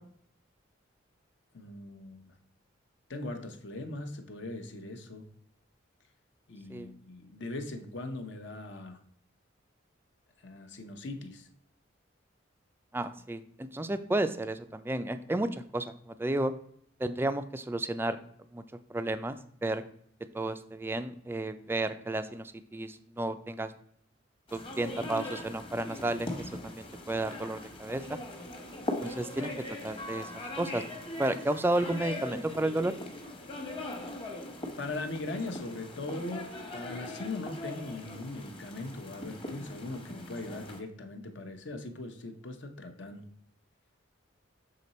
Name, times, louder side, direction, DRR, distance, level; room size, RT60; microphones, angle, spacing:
voice 1, 1.5-2.3 3.1-5.3 6.5-9.0 10.4-11.5 34.8-43.2, left 2 dB, 60° left, 5 dB, 0.8 m, -40 dB
voice 2, 12.9-16.5 17.0-18.2 18.5-18.6 18.9-19.8 20.3-23.7 24.5-28.2 29.0-30.3 30.6-30.8 31.2-32.9, right 1 dB, 10° right, 11 dB, 0.3 m, -32 dB
sound 1, 24.5-40.8, left 1 dB, 25° left, 1.1 m, -41 dB
6.7 x 3.8 x 4.1 m, 0.65 s
head